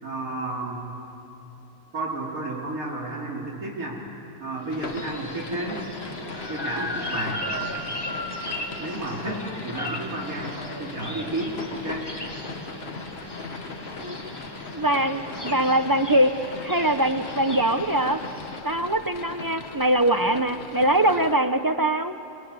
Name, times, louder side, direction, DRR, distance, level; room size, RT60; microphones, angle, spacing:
voice 1, 0.0-0.9 1.9-4.1 4.4-5.8 6.5-7.4 8.8-12.1, right 2 dB, 75° right, -2 dB, 3.3 m, -32 dB
sound 1, 4.6-18.6, left 1 dB, 15° left, 1.8 m, -36 dB
sound 2, 4.7-21.3, left 4 dB, 45° left, 1.4 m, -39 dB
voice 2, 14.7-16.3 16.6-18.2 18.6-22.1, right 1 dB, 25° right, 9 dB, 0.4 m, -22 dB
27.0 x 21.0 x 9.7 m, 2.8 s
omnidirectional pair, 1.5 m